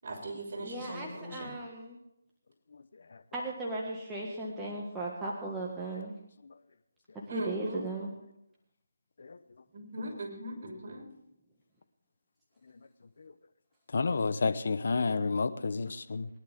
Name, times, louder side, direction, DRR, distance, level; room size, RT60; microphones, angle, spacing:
voice 1, 0.0-1.5 7.3-7.8 9.7-11.0, right 1 dB, 45° right, -2 dB, 6.3 m, -39 dB
voice 2, 0.6-2.0 3.3-6.1 7.3-8.1, right 2 dB, 10° right, -5 dB, 1.8 m, -37 dB
voice 3, 13.9-16.3, left 4 dB, 60° left, 12 dB, 0.9 m, -30 dB
22.5 x 11.0 x 3.6 m, 0.79 s
figure-of-eight pair, 160°, 0 cm